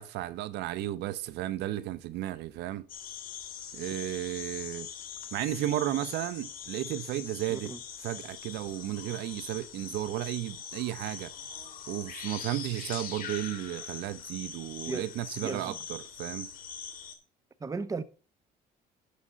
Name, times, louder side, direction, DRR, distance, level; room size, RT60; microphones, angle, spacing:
voice 1, 0.0-2.9 3.7-4.9 5.3-7.7 8.0-11.3 11.9-16.5, right 14 dB, 80° right, 0.7 m, -34 dB
sound 1, 2.9-17.2, left 7 dB, 55° left, 2.4 m, -42 dB
voice 2, 7.5-7.8 14.9-15.1 15.4-15.8 17.6-18.0, right 4 dB, 20° right, 0.8 m, -35 dB
11.5 x 6.6 x 3.9 m
cardioid pair, 110°, 17 cm